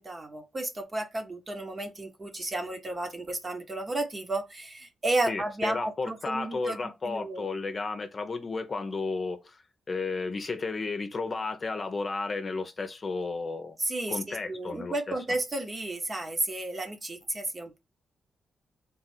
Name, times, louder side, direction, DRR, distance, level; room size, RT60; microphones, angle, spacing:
voice 1, 0.0-6.8 7.0-7.5 13.8-17.8, right 2 dB, 35° right, 1.1 m, -32 dB
voice 2, 5.3-9.6 9.9-13.8 14.1-14.9, left 3 dB, 40° left, 0.8 m, -33 dB
3.5 x 2.4 x 4.3 m
cardioid pair, 65°, 0 cm